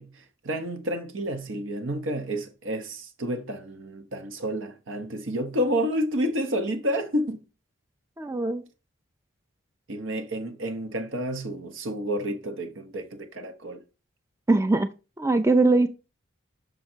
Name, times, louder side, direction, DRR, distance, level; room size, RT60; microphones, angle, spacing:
voice 1, 0.0-7.4 9.9-13.8, equal, 70° right, 0.9 m, -30 dB
voice 2, 8.2-8.6 14.5-14.9 15.2-15.9, right 2 dB, 15° right, 0.4 m, -21 dB
6.6 x 3.8 x 4.4 m
head